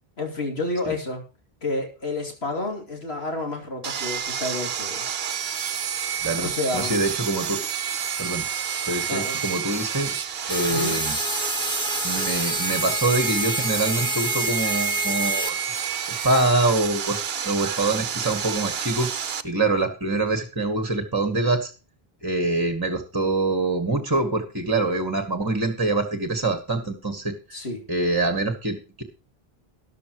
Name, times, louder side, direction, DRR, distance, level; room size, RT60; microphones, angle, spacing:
voice 1, 0.2-1.2 1.6-5.0 6.4-7.0 9.1-9.4 10.7-10.9 27.5-27.8, left 2 dB, 85° left, 1 dB, 3.0 m, -30 dB
Sawing, 3.8-19.4, right 8 dB, 70° right, 1.0 m, -29 dB
voice 2, 6.2-7.6 8.2-8.5 8.8-10.1 10.5-11.2 12.0-15.6 16.2-17.2 17.4-19.1 19.4-21.7 22.2-27.6 27.9-29.0, right 2 dB, 20° right, 7 dB, 1.5 m, -25 dB
sound 1, 10.5-15.5, left 1 dB, 5° left, 0.6 m, -28 dB
13.5 x 11.5 x 3.1 m, 0.33 s
omnidirectional pair, 1.0 m